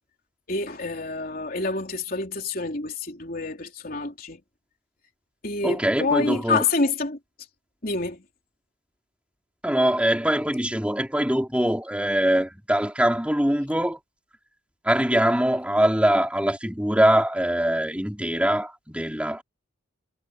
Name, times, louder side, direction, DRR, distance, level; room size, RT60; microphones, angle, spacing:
voice 1, 0.5-4.4 5.4-7.2 7.8-8.2, left 3 dB, 45° left, 3.6 m, -27 dB
voice 2, 5.6-6.6 9.6-14.0 14.8-19.4, right 1 dB, 5° right, 3.1 m, -23 dB
head